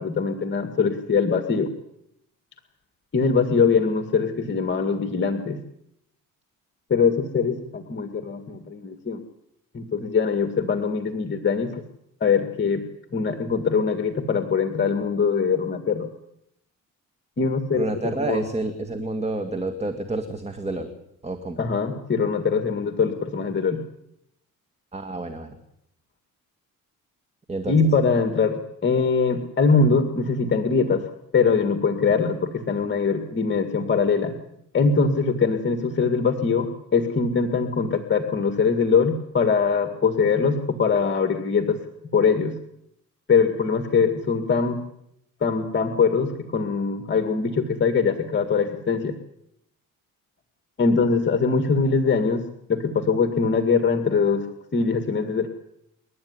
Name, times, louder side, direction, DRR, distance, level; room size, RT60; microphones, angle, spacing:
voice 1, 0.0-1.7 3.1-5.6 6.9-9.2 9.7-11.8 12.2-12.9 13.1-16.1 17.4-18.4 21.6-23.8 27.7-34.3 34.7-41.8 42.1-42.6 43.3-44.8 45.4-49.1 50.8-52.4 52.7-55.5, left 5 dB, 35° left, 7 dB, 2.1 m, -22 dB
voice 2, 17.7-20.9 21.2-21.6 24.9-25.6 27.5-27.8, right 2 dB, 20° right, 7 dB, 2.3 m, -29 dB
28.5 x 12.5 x 9.8 m, 0.78 s
cardioid pair, 100°, 33 cm